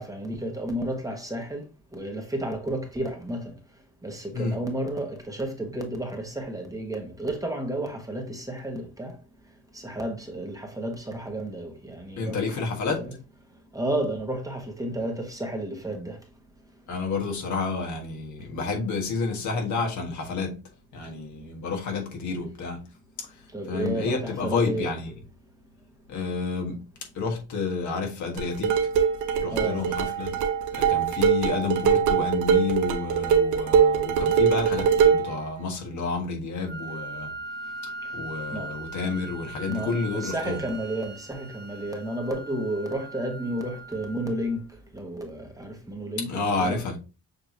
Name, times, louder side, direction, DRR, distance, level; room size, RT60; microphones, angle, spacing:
voice 1, 0.0-3.6 4.0-9.2 9.7-12.6 13.0-13.1 13.7-16.2 23.5-24.9 29.5-29.9 38.0-38.2 38.5-38.7 39.6-44.6 44.9-46.8, right 1 dB, 10° right, 1.2 m, -32 dB
voice 2, 12.2-13.1 16.9-20.5 20.9-22.9 23.2-23.4 23.7-25.1 26.1-26.8 27.1-28.8 29.4-30.3 30.7-37.3 37.8-40.6 46.3-47.0, left 4 dB, 70° left, 1.5 m, -30 dB
sound 1, 28.4-35.3, right 7 dB, 90° right, 0.8 m, -22 dB
Wind instrument woodwind instrument, 36.7-44.6, right 3 dB, 35° right, 0.7 m, -40 dB
6.8 x 2.9 x 2.7 m
cardioid pair, 90°, 30 cm